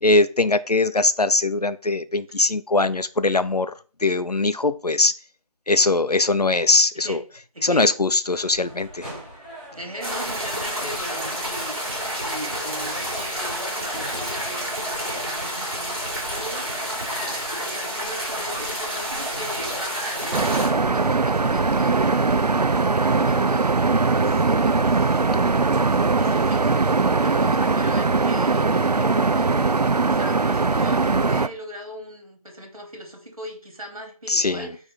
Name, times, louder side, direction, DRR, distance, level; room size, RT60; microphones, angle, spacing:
voice 1, 0.0-3.7 4.0-5.1 5.7-7.2 7.6-9.1 34.3-34.7, left 2 dB, 85° left, 14 dB, 0.7 m, -21 dB
voice 2, 7.5-7.9 8.3-8.4 9.7-11.8 12.2-16.7 17.1-22.3 22.8-26.9 27.2-29.6 29.9-34.8, equal, 65° right, 2 dB, 2.8 m, -38 dB
sound 1, 8.2-22.7, equal, 15° right, 1.7 m, -43 dB
sound 2, 10.0-20.7, equal, 40° right, 3.8 m, -29 dB
sound 3, 20.3-31.5, right 3 dB, 90° right, 0.6 m, -20 dB
9.0 x 3.4 x 4.3 m, 0.39 s
figure-of-eight pair, 180°, 20 cm